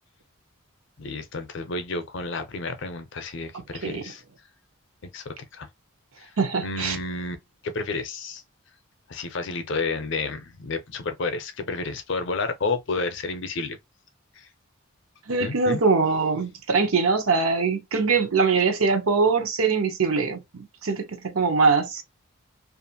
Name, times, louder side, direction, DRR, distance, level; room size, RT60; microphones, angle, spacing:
voice 1, 1.0-4.2 5.0-5.7 6.2-6.3 6.6-7.4 7.6-8.4 9.1-13.8 14.4-14.5 15.4-15.8, left 3 dB, 55° left, 0.5 m, -31 dB
voice 2, 6.4-7.0 15.3-22.0, right 4 dB, 75° right, 0.7 m, -22 dB
2.5 x 2.4 x 2.7 m
head